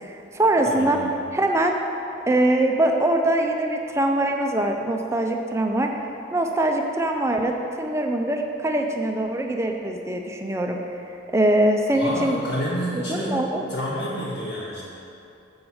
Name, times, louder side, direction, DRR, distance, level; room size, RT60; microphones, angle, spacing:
voice 1, 0.0-1.0 1.3-1.8 2.3-5.9 6.3-10.8 11.3-12.4 13.1-13.6, right 1 dB, 15° right, 3 dB, 0.5 m, -22 dB
voice 2, 0.6-1.2 11.9-14.8, equal, 70° left, -10 dB, 1.3 m, -29 dB
7.1 x 4.9 x 6.3 m, 2.8 s
head